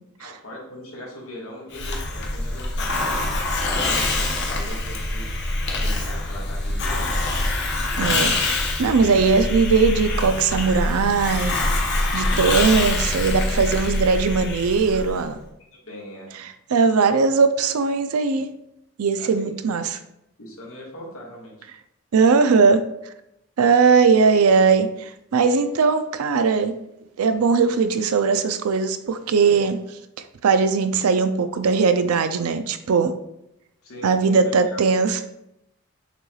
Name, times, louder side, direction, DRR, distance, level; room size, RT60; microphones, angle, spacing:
voice 1, 0.2-3.2 3.8-5.3 5.7-7.1 13.1-14.0 14.9-15.1 15.4-16.3 19.2-19.5 19.8-20.0 20.4-21.7 29.4-29.5 33.8-34.8, left 1 dB, 70° left, -4 dB, 1.5 m, -40 dB
Hiss, 1.7-15.2, left 2 dB, 50° left, 0.7 m, -25 dB
voice 2, 8.0-8.4 8.8-15.4 16.7-18.5 19.0-20.0 22.1-22.9 23.6-26.7 27.2-29.8 30.4-33.1 34.0-35.3, right 5 dB, 80° right, 9 dB, 0.4 m, -19 dB
6.6 x 3.1 x 2.3 m, 0.82 s
head